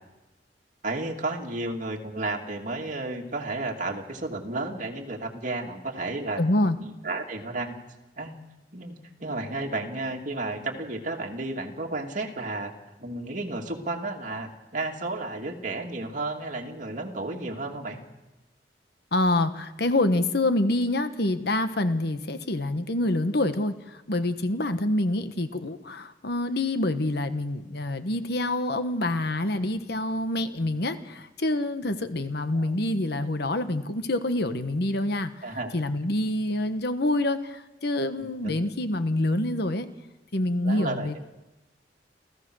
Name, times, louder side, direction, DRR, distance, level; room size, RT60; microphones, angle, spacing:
voice 1, 0.8-6.4 6.8-7.8 8.2-8.4 8.7-12.7 13.0-18.0 32.5-32.7 35.4-35.7 38.2-38.6 40.6-41.2, right 2 dB, 50° right, 1 dB, 2.7 m, -32 dB
voice 2, 6.4-6.8 19.1-39.9 40.3-41.2, left 1 dB, 65° left, 10 dB, 1.3 m, -26 dB
29.0 x 15.5 x 6.3 m, 1.0 s
head